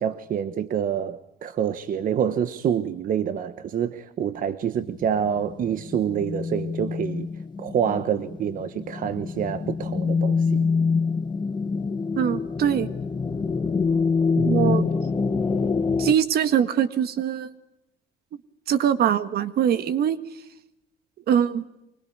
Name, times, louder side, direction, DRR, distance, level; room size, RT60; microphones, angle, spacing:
voice 1, 0.0-7.3 7.6-10.7 14.4-14.9, right 8 dB, 55° right, 1.2 m, -27 dB
sound 1, 4.8-16.1, left 5 dB, 25° left, 1.5 m, -26 dB
voice 2, 12.2-12.9 14.4-14.8 16.0-17.5 18.7-20.2 21.3-21.6, right 9 dB, 70° right, 1.8 m, -22 dB
25.5 x 24.0 x 9.5 m
cardioid pair, 145°, 17 cm